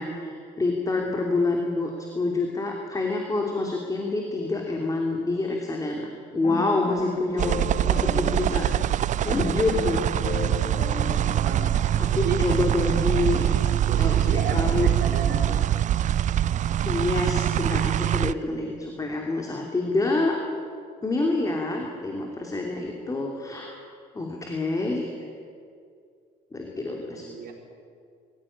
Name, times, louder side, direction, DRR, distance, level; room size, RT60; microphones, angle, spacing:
voice 1, 0.0-7.6 7.8-8.7 9.2-10.0 12.0-13.5 14.0-14.9 16.8-20.4 21.0-23.8 24.1-25.3 26.5-27.2, left 2 dB, 20° left, 1 dB, 3.1 m, -27 dB
sound 1, 6.4-12.1, left 5 dB, 40° left, 2.2 m, -35 dB
sound 2, 7.4-18.3, right 11 dB, 45° right, 0.5 m, -24 dB
voice 2, 11.4-11.7 12.1-12.4 13.8-15.6 27.1-27.5, right 6 dB, 65° right, 2 dB, 4.9 m, -33 dB
23.0 x 15.5 x 10.0 m, 2.3 s
cardioid pair, 110°, 17 cm